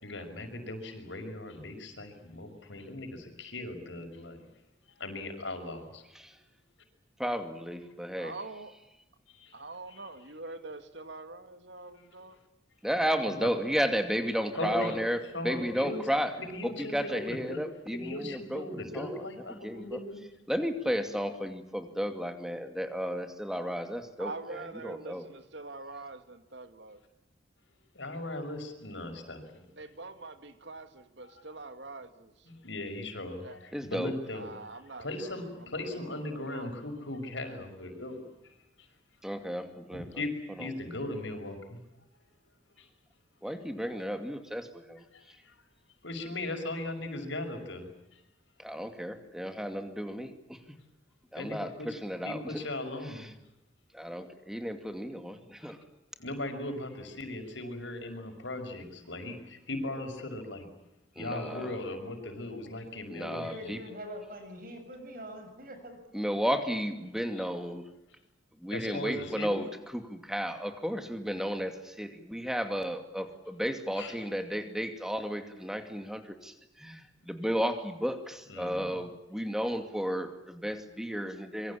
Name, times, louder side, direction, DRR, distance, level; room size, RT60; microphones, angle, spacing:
voice 1, 0.0-4.5 5.0-6.0 9.3-9.5 9.9-10.0 13.3-13.5 14.5-15.0 15.3-16.0 16.4-17.6 17.9-20.2 27.9-29.7 31.2-31.4 32.4-38.9 39.9-40.3 40.6-41.8 42.8-42.9 43.8-44.0 45.1-45.7 46.0-48.2 51.3-51.9 52.2-53.3 55.6-55.7 56.2-60.7 61.2-63.7 67.3-67.5 68.7-69.6 74.0-74.3 78.5-79.0, left 2 dB, 80° left, 5 dB, 5.9 m, -38 dB
voice 2, 7.2-8.3 12.8-16.3 16.6-19.2 19.5-20.0 20.5-25.3 33.7-34.1 39.2-40.1 43.4-45.0 48.6-50.6 51.3-52.6 53.9-55.8 61.2-61.8 63.1-63.8 66.1-67.8 68.6-69.7 69.9-81.8, equal, 5° right, 7 dB, 2.5 m, -33 dB
voice 3, 8.2-8.7 9.5-12.4 24.2-27.0 29.8-32.5 33.4-33.6 34.3-36.7, right 3 dB, 70° right, 9 dB, 2.2 m, -45 dB
voice 4, 63.4-66.4 67.2-67.6, equal, 45° right, 6 dB, 7.4 m, -44 dB
26.0 x 23.5 x 8.6 m, 0.90 s
head